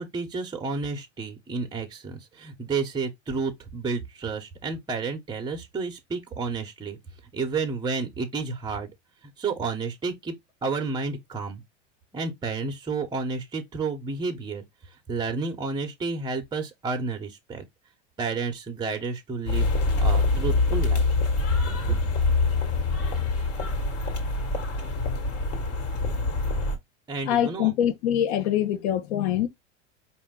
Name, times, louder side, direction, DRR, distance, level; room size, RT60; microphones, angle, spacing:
voice 1, 0.0-7.0 7.3-8.9 9.4-10.3 10.6-11.6 12.1-14.6 15.1-17.6 18.2-21.0 21.9-22.0 27.1-27.7, right 4 dB, 10° right, 1.0 m, -31 dB
sound 1, 19.4-26.8, left 3 dB, 40° left, 1.8 m, -25 dB
voice 2, 27.3-29.5, left 11 dB, 60° left, 1.0 m, -24 dB
4.5 x 2.7 x 3.7 m
hypercardioid pair, 115°, 37 cm